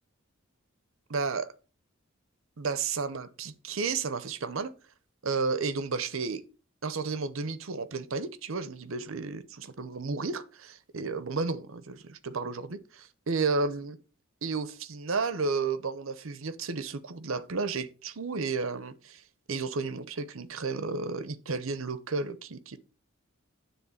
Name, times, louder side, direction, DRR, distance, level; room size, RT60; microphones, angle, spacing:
voice 1, 1.1-1.4 2.6-4.7 5.2-6.4 6.8-14.0 14.4-19.2 19.5-22.8, right 4 dB, 80° right, 0.8 m, -32 dB
9.9 x 3.5 x 7.1 m
head